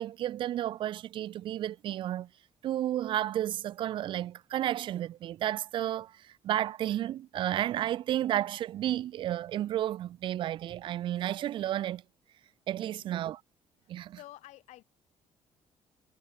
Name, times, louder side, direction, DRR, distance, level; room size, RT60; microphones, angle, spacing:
voice 1, 0.0-2.3 2.6-12.0 12.7-13.4 13.9-14.2, right 12 dB, 45° right, 0.4 m, -32 dB
voice 2, 12.8-13.2 13.8-14.8, left 16 dB, 90° left, 5.8 m, -52 dB
cardioid pair, 175°, 11 cm